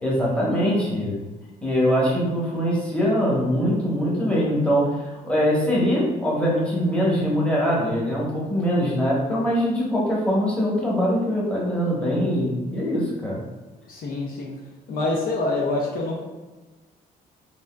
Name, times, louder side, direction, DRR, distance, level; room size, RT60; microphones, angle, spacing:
voice 1, 0.0-1.2 1.6-13.4, equal, 5° left, -6 dB, 1.0 m, -22 dB
voice 2, 13.9-14.5 14.9-16.2, left 2 dB, 60° left, -1 dB, 0.5 m, -26 dB
3.4 x 2.6 x 2.2 m, 1.2 s
cardioid pair, 110°, 17 cm